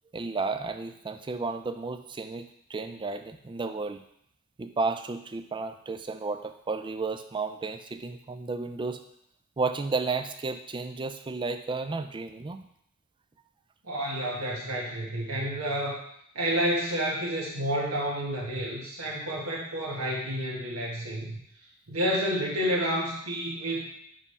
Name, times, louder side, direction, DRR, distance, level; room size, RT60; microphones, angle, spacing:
voice 1, 0.1-4.0 4.6-9.0 9.6-12.6, right 3 dB, 20° right, 8 dB, 0.4 m, -32 dB
voice 2, 13.8-16.0 16.3-21.4 21.9-23.8, equal, 85° right, -4 dB, 1.4 m, -30 dB
5.2 x 3.4 x 5.4 m, 0.71 s
head